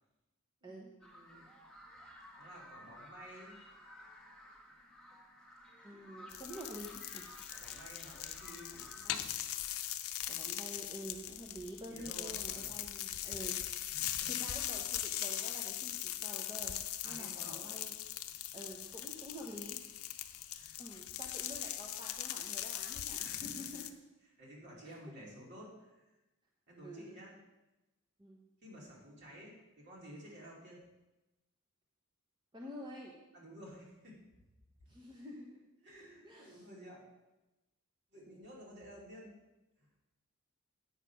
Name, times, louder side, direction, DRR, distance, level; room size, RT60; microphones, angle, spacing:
voice 1, 0.6-1.5 2.4-3.6 7.5-8.9 11.9-12.8 13.9-14.3 17.0-17.7 20.5-20.8 23.2-23.6 24.4-26.0 26.7-27.3 28.6-30.8 33.3-34.2 35.8-37.0 38.1-39.4 39.8-39.9, equal, 55° right, -4 dB, 3.2 m, -53 dB
sound 1, 1.0-9.1, equal, 5° left, 1.5 m, -55 dB
voice 2, 5.8-7.3 8.9-9.3 10.3-13.6 13.9-16.8 17.0-18.0 18.5-19.8 20.8-23.9 24.8-24.9 26.8-27.2 28.2-28.4 32.5-33.1 34.9-35.6 36.2-36.6, equal, 20° right, -2 dB, 1.0 m, -48 dB
sound 2, 6.3-23.9, left 12 dB, 75° left, 0.6 m, -40 dB
8.4 x 6.7 x 6.0 m, 1.0 s
head